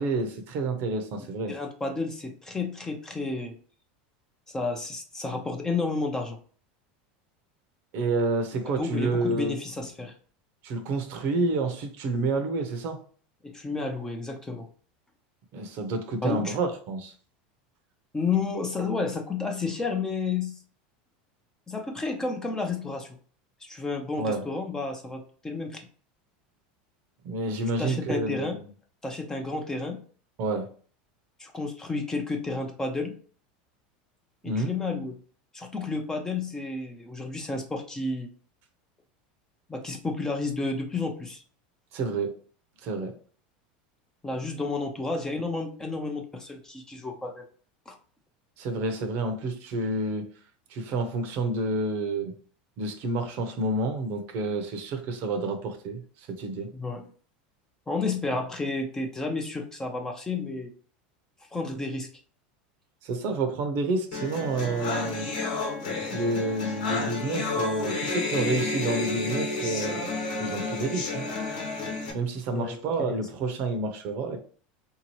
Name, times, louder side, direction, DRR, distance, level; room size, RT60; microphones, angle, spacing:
voice 1, 0.0-1.5 7.9-9.6 10.6-13.0 15.5-17.1 24.2-24.4 27.2-28.5 30.4-30.7 34.4-34.7 41.9-42.3 42.8-43.1 48.6-50.3 50.7-52.3 52.8-56.7 63.0-65.3 66.1-70.1 70.4-71.3 72.1-74.4, right 2 dB, 55° right, 6 dB, 0.8 m, -29 dB
voice 2, 1.5-3.6 4.5-6.4 8.8-10.1 13.4-14.7 16.2-16.5 18.1-20.6 21.7-23.1 23.6-25.9 27.8-28.6 29.0-30.0 31.4-33.1 34.4-35.2 35.5-38.3 39.7-41.4 44.2-47.5 47.9-48.0 56.7-57.0 57.9-60.7 61.5-62.1 72.5-72.8 73.1-73.2, left 3 dB, 15° left, 3 dB, 0.6 m, -31 dB
sound 1, 64.1-72.1, left 3 dB, 80° left, 1.2 m, -31 dB
3.6 x 2.8 x 3.0 m, 0.43 s
supercardioid pair, 125°, 5 cm